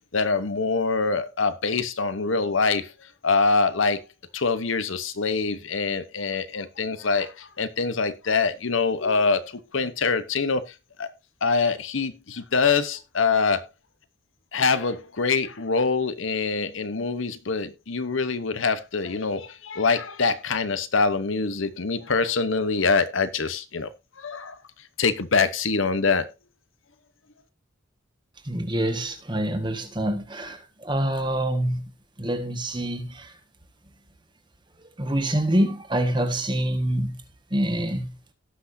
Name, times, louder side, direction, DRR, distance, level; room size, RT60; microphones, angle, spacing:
voice 1, 0.1-2.9 3.2-4.0 4.3-11.1 11.4-13.7 14.5-23.9 24.2-24.6 25.0-26.3, left 4 dB, 70° left, 1.0 m, -24 dB
voice 2, 28.5-31.8 32.2-33.3 35.0-37.2 37.5-38.1, right 1 dB, 20° right, 1.5 m, -26 dB
17.5 x 6.1 x 2.7 m
head